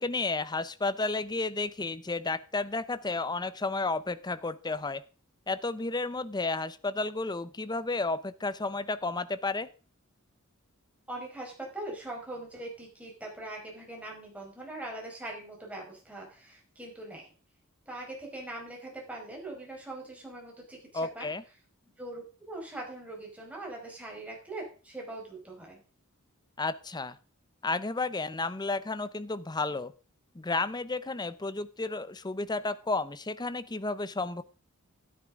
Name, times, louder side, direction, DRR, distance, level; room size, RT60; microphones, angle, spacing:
voice 1, 0.0-5.0 5.5-9.7 20.9-21.4 26.6-27.2 27.6-29.9 30.3-34.4, left 3 dB, 20° left, 14 dB, 0.7 m, -32 dB
voice 2, 11.1-17.3 17.9-20.8 21.1-21.3 22.0-25.8, right 2 dB, 5° right, -2 dB, 4.9 m, -41 dB
12.5 x 10.5 x 3.6 m, 0.36 s
head